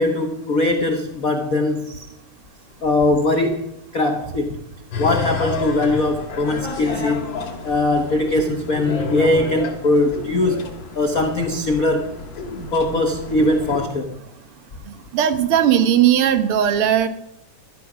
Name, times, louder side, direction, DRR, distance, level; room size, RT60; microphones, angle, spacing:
voice 1, 0.0-2.1 2.8-3.7 3.9-4.6 5.0-7.4 7.6-10.6 10.9-12.1 12.7-14.2, left 2 dB, 75° left, 4 dB, 0.7 m, -20 dB
sound 1, 4.9-13.9, left 3 dB, 55° left, 3.2 m, -30 dB
voice 2, 15.1-17.1, right 10 dB, 55° right, 10 dB, 1.7 m, -17 dB
13.5 x 13.0 x 6.1 m, 0.84 s
omnidirectional pair, 3.5 m